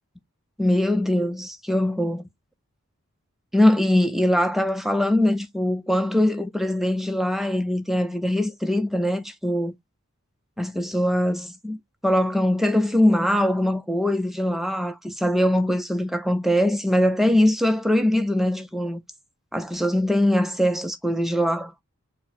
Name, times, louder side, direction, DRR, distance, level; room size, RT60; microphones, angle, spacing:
voice 1, 0.6-2.2 3.5-9.7 10.6-11.8 12.0-19.0 19.5-21.7, left 1 dB, ahead, 0.5 m, -22 dB
4.5 x 2.1 x 4.0 m
head